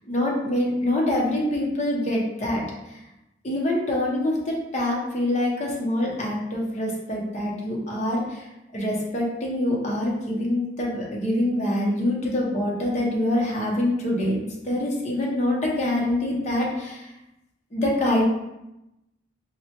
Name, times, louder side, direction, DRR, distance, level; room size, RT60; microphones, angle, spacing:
voice 1, 0.1-2.6 2.9-3.0 3.4-17.1 17.7-18.2, left 1 dB, 40° left, -2 dB, 0.7 m, -25 dB
4.2 x 2.1 x 2.8 m, 0.91 s
head